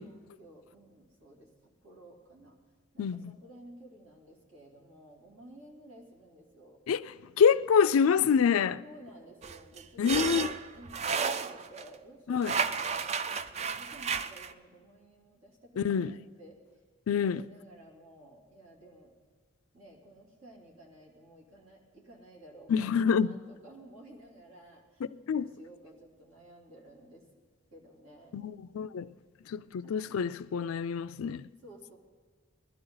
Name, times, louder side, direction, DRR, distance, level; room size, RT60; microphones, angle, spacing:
voice 1, 0.0-2.6 2.9-6.8 8.8-10.0 10.3-16.6 17.1-19.1 19.7-25.0 25.3-27.2 27.7-28.5 29.8-29.9 31.6-32.0, right 1 dB, 80° right, 3.0 m, -54 dB
voice 2, 3.0-3.3 6.9-8.8 10.0-10.5 12.3-12.6 15.8-16.2 17.1-17.5 22.7-23.3 25.3-25.5 28.3-29.1 29.5-31.5, left 6 dB, 90° left, 0.4 m, -26 dB
sound 1, 9.4-11.9 12.4-14.5, right 5 dB, 30° right, 0.3 m, -32 dB
20.5 x 12.5 x 3.9 m
head